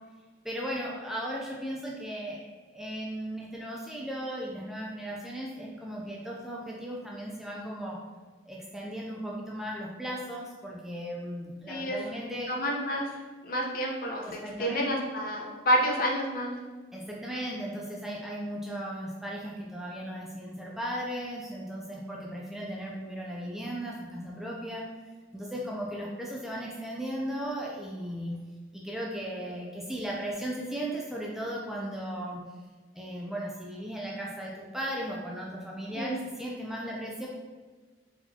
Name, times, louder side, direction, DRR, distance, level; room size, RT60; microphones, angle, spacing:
voice 1, 0.4-8.0 8.4-12.5 14.2-14.9 16.9-24.8 25.3-28.3 28.7-32.4 32.9-37.3, equal, ahead, -3 dB, 0.4 m, -36 dB
voice 2, 11.7-12.0 12.5-13.1 13.4-16.5 35.9-36.2, equal, 50° left, -1 dB, 0.8 m, -29 dB
4.4 x 4.2 x 2.8 m, 1.3 s
head